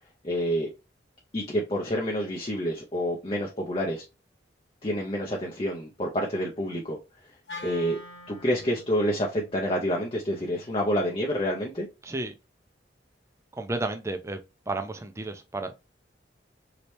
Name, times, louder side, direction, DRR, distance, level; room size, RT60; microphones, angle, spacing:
voice 1, 0.2-0.7 1.3-4.0 4.8-7.0 7.6-8.0 8.3-11.9, equal, 30° left, 0.6 m, -28 dB
Wind instrument woodwind instrument, 7.5-11.7, left 2 dB, 80° left, 1.1 m, -47 dB
voice 2, 12.0-12.3 13.5-14.4 14.7-15.8, right 2 dB, 15° right, 0.5 m, -32 dB
3.2 x 2.9 x 3.1 m
head